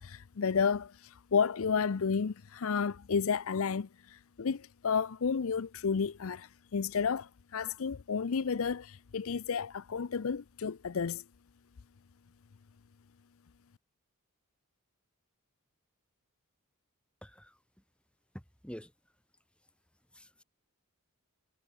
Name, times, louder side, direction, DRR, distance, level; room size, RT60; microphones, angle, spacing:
voice 1, 0.0-11.2, left 6 dB, 65° left, 0.5 m, -32 dB
voice 2, 17.2-17.6 18.3-18.9 20.1-20.4, equal, 5° left, 2.2 m, -47 dB
head